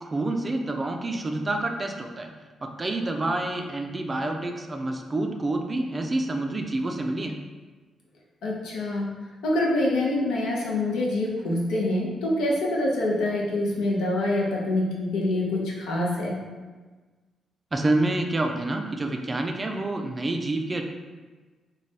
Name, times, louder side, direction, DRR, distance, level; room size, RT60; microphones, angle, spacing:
voice 1, 0.0-2.3 2.6-7.4 17.7-20.8, right 2 dB, 30° right, 3 dB, 0.3 m, -28 dB
voice 2, 8.4-9.1 9.4-16.4, left 1 dB, 90° left, -3 dB, 0.6 m, -25 dB
3.2 x 2.2 x 2.6 m, 1.3 s
cardioid pair, 80°, 0 cm